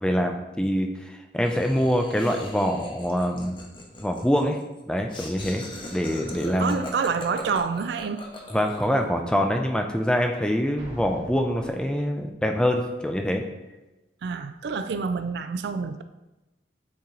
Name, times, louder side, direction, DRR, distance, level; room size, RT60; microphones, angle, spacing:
voice 1, 0.0-3.6 4.0-4.6 4.9-5.6 5.9-6.8 8.5-13.4, equal, 5° left, 4 dB, 0.4 m, -25 dB
Laughter, 1.4-9.0, left 1 dB, 25° left, 0.8 m, -41 dB
voice 2, 6.5-8.2 14.2-16.0, right 5 dB, 65° right, 10 dB, 0.3 m, -28 dB
Explosion, 10.8-12.4, equal, 80° right, 1.6 m, -45 dB
8.5 x 2.9 x 3.8 m, 1.1 s
head